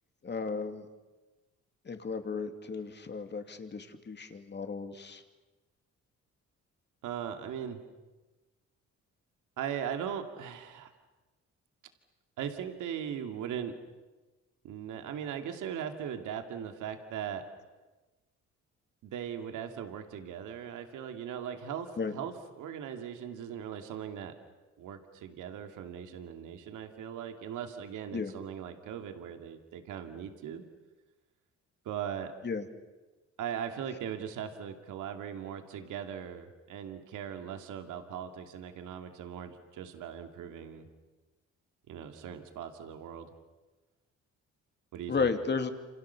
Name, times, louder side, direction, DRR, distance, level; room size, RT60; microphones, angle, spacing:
voice 1, 0.2-0.9 1.8-5.2 22.0-22.1 28.1-28.3 32.4-32.6 45.1-45.7, left 5 dB, 35° left, 6 dB, 2.8 m, -34 dB
voice 2, 7.0-7.8 9.6-10.9 12.4-13.7 14.6-17.4 19.0-24.3 24.8-30.6 31.8-32.3 33.4-40.9 41.9-43.3 44.9-45.3, right 8 dB, 85° right, 6 dB, 2.5 m, -39 dB
28.5 x 27.5 x 7.0 m, 1.2 s
cardioid pair, 90°, 30 cm